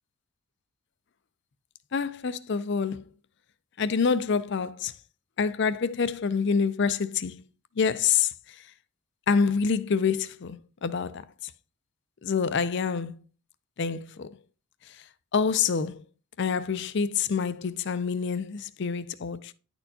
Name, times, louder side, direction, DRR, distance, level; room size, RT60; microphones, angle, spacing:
voice 1, 1.9-3.0 3.8-4.9 5.4-7.4 7.8-8.3 9.3-11.3 12.2-13.2 13.8-14.4 15.3-16.0 16.4-19.5, left 5 dB, 55° left, 0.4 m, -27 dB
9.9 x 4.4 x 2.7 m
head